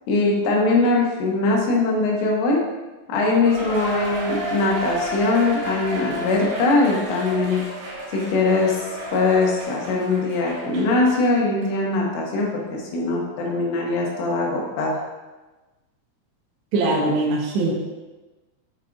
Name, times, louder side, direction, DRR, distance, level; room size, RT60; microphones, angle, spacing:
voice 1, 0.1-2.6 3.1-7.6 8.1-8.8 9.1-15.0, left 3 dB, 80° left, -2 dB, 3.7 m, -21 dB
Cheering, 3.4-11.2 11.6-11.7 12.4-12.5, right 1 dB, 90° right, 4.8 m, -32 dB
voice 2, 16.7-17.7, right 2 dB, 70° right, -2 dB, 2.9 m, -21 dB
8.8 x 5.5 x 2.5 m, 1.2 s
omnidirectional pair, 5.7 m